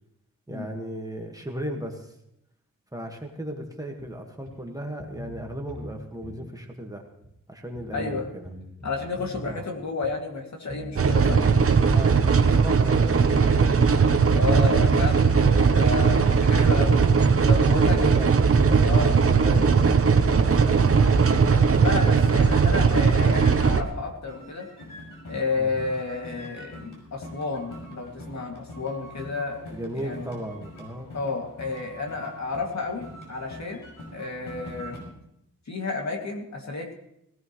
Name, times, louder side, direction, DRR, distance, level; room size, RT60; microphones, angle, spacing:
voice 1, 0.5-2.1 2.9-7.0 7.5-8.5 9.4-9.6 11.9-13.8 17.6-21.0 25.6-25.7 29.7-31.1, right 1 dB, 10° right, 1 dB, 1.6 m, -36 dB
sound 1, 4.0-4.1 4.4-4.5 5.0-5.9 6.2-6.5 7.2-7.3 7.7-9.6 10.0-10.1 10.7-10.9 11.2-12.0 12.7-12.8 13.3-15.1 15.5-15.6 16.0-17.0 17.2-17.5 18.2-18.3 18.8-20.1, equal, 30° left, 7.5 m, -41 dB
voice 2, 7.9-8.3 8.8-11.5 14.3-17.0 17.5-18.2 18.8-19.3 20.5-24.7 25.3-30.3 31.1-33.9 34.1-35.0 35.7-36.9, left 3 dB, 55° left, 1 dB, 2.5 m, -31 dB
sound 2, 10.9-23.8, right 5 dB, 45° right, 0.9 m, -19 dB
sound 3, 16.4-24.0 24.3-35.0, left 1 dB, 85° left, 6.0 m, -43 dB
18.0 x 17.5 x 3.2 m, 0.80 s
wide cardioid pair, 160°, 32 cm